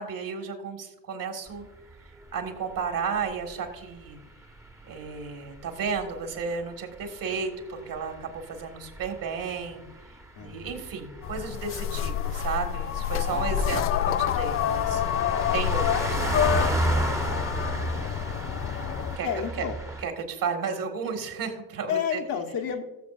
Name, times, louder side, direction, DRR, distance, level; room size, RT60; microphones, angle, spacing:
voice 1, 0.0-1.7 2.3-4.2 4.9-9.8 10.4-15.0 15.5-16.6 19.2-19.3 20.0-22.2, right 5 dB, 40° right, 4 dB, 2.0 m, -33 dB
sound 1, 1.5-20.0, right 2 dB, 5° right, 1.3 m, -34 dB
voice 2, 10.3-10.8 13.3-13.7 17.6-17.8 19.2-19.7 21.9-22.8, left 8 dB, 45° left, 3 dB, 1.4 m, -31 dB
sound 2, 11.2-19.2, left 10 dB, 30° left, 0.5 m, -27 dB
18.5 x 7.2 x 2.6 m, 1.1 s
hypercardioid pair, 70°, 49 cm